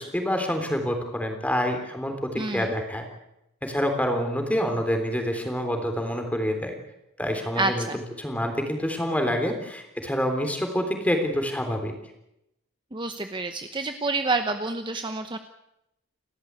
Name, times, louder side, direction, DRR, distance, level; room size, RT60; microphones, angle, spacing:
voice 1, 0.0-3.0 3.6-6.8 7.2-11.9, equal, 5° left, 5 dB, 3.4 m, -27 dB
voice 2, 2.4-2.7 7.6-8.0 12.9-15.4, right 3 dB, 20° right, 7 dB, 0.9 m, -28 dB
29.5 x 13.5 x 8.3 m, 0.86 s
head